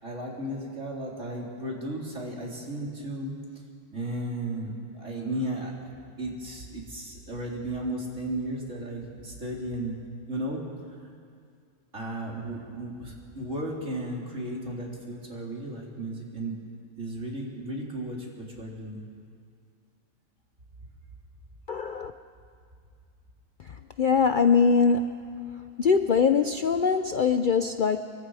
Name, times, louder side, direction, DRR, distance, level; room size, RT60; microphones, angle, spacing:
voice 1, 0.0-3.3 3.9-5.9 6.2-10.0 10.3-10.6 11.9-16.6 17.0-19.0, right 1 dB, 50° right, -2 dB, 3.8 m, -34 dB
voice 2, 21.7-22.1 24.0-25.3 25.8-28.0, left 5 dB, 85° left, 8 dB, 0.4 m, -22 dB
27.0 x 23.5 x 4.9 m, 2.2 s
omnidirectional pair, 1.7 m